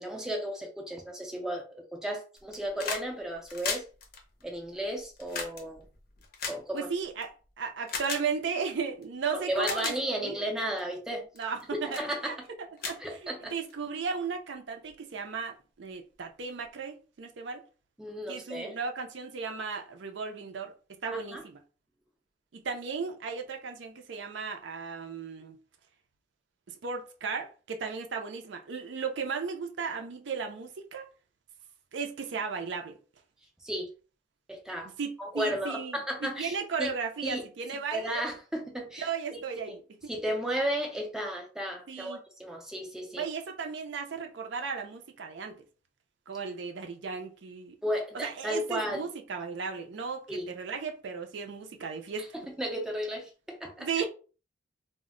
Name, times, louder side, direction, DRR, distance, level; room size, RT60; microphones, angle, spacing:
voice 1, 0.0-3.9 4.4-5.8 6.4-6.9 9.3-11.3 11.7-12.4 12.8-13.5 18.0-18.8 21.1-21.4 33.6-33.9 34.5-34.9 35.2-36.9 37.2-37.4 37.9-39.7 40.1-43.2 47.8-49.1 50.3-50.5 52.2-54.1, equal, 5° right, 0.4 m, -34 dB
sound 1, 2.4-3.1 3.3-7.2 7.9-8.2 9.0-9.1 9.5-10.0 10.6-10.8 11.3-11.6 11.9-12.1 12.4-12.5 12.8-13.7 14.9-15.0, left 5 dB, 50° left, 0.6 m, -36 dB
voice 2, 6.7-7.3 7.6-10.4 11.4-17.6 18.3-20.7 21.0-21.6 22.5-25.5 26.7-31.1 31.9-33.0 35.0-36.0 36.4-38.2 39.0-39.8 41.9-42.2 43.2-45.6 46.3-47.8 48.1-52.3 53.8-54.1, right 5 dB, 65° right, 0.4 m, -35 dB
2.1 x 2.1 x 3.6 m
head